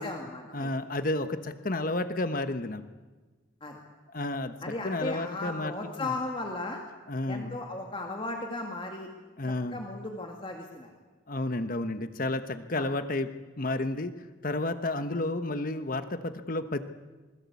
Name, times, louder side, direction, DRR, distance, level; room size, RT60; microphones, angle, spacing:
voice 1, 0.0-0.7 3.6-3.8 4.6-6.8 7.3-9.1 9.7-10.9 12.7-12.9, left 2 dB, 25° left, 2 dB, 2.4 m, -36 dB
voice 2, 0.5-2.8 4.1-4.5 4.8-5.7 6.0-6.1 7.1-7.6 9.4-9.8 11.3-13.3 13.6-14.1 14.4-16.8, left 2 dB, 45° left, 10 dB, 1.1 m, -31 dB
27.0 x 21.5 x 8.4 m, 1.3 s
head